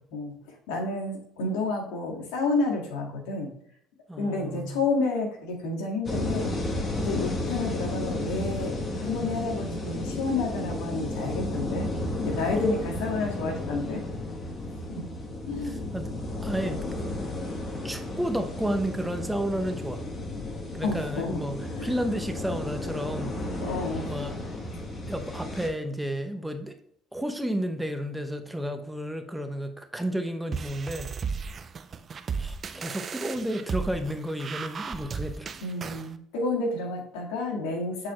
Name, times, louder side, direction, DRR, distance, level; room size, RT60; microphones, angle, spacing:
voice 1, 0.1-3.5 4.2-6.5 7.0-11.9 12.2-14.0 14.9-15.1 15.5-15.9 20.8-21.4 21.7-21.9 23.6-24.2 35.6-38.1, left 3 dB, 80° left, 0 dB, 1.9 m, -30 dB
voice 2, 4.1-4.8 15.6-16.1 16.4-17.1 17.8-20.1 20.7-23.4 24.1-24.4 25.1-26.8 27.1-31.1 32.4-35.5, equal, 5° right, 6 dB, 0.9 m, -32 dB
sound 1, 6.0-25.7, left 1 dB, 35° left, 1.6 m, -33 dB
sound 2, 30.5-36.1, right 5 dB, 40° right, 0.5 m, -35 dB
8.2 x 4.2 x 3.1 m, 0.69 s
supercardioid pair, 70°, 0 cm